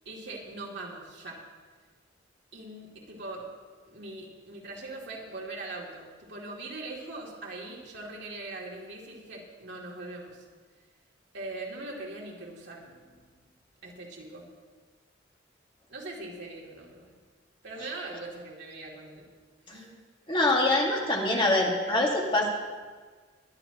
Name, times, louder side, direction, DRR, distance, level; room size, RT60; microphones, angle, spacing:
voice 1, 0.0-1.4 2.5-3.5 3.9-10.5 11.3-13.2 13.8-14.5 15.9-17.1 17.6-19.3 19.7-20.0, right 2 dB, 65° right, -3 dB, 2.8 m, -41 dB
voice 2, 20.3-22.5, left 2 dB, 25° left, -1 dB, 1.9 m, -24 dB
22.0 x 11.0 x 3.0 m, 1.5 s
head